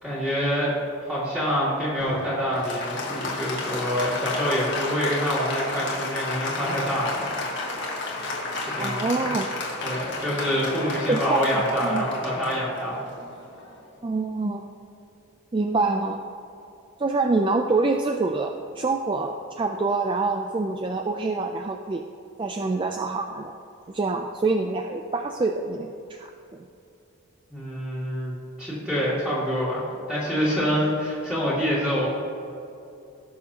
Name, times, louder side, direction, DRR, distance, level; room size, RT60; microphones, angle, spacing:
voice 1, 0.0-7.3 7.6-7.7 8.7-9.3 9.8-13.1 27.5-32.1, equal, 5° right, -10 dB, 2.3 m, -26 dB
Applause, 2.0-13.9, left 2 dB, 50° left, 1.5 m, -32 dB
voice 2, 8.8-9.5 11.0-12.0 14.0-14.7 15.5-16.2 17.0-22.0 22.4-23.5 23.9-25.9 26.2-26.6, right 3 dB, 20° right, 4 dB, 0.3 m, -26 dB
16.5 x 6.7 x 2.8 m, 2.6 s
head